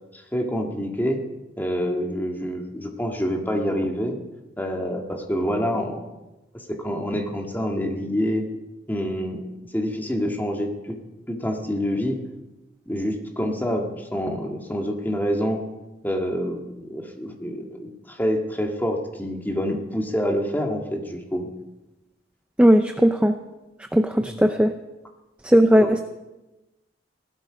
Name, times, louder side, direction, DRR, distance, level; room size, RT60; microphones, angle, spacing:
voice 1, 0.1-1.2 1.6-4.2 4.6-6.0 6.5-8.4 8.9-9.4 9.7-11.0 11.3-12.2 12.9-15.6 16.0-21.5 24.2-24.4 25.7-25.9, equal, 10° left, 2 dB, 1.8 m, -27 dB
voice 2, 22.6-23.3 23.9-24.7 25.4-26.0, equal, 5° right, 7 dB, 0.5 m, -17 dB
18.0 x 12.5 x 5.1 m, 1.0 s
head